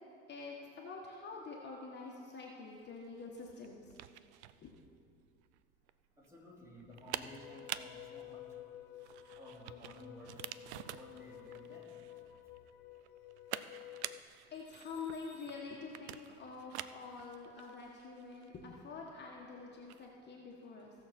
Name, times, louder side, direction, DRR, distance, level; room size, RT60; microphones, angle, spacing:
voice 1, 0.3-4.0 4.6-4.8 14.5-20.9, left 4 dB, 30° left, -2 dB, 1.4 m, -47 dB
sound 1, 2.8-20.1, right 13 dB, 85° right, 0.5 m, -49 dB
voice 2, 6.2-8.6 9.4-10.5 10.9-12.5, left 1 dB, 10° right, -3 dB, 2.9 m, -54 dB
sound 2, 7.3-14.2, left 13 dB, 65° left, 0.7 m, -52 dB
17.0 x 6.6 x 4.3 m, 2.5 s
hypercardioid pair, 90°, 32 cm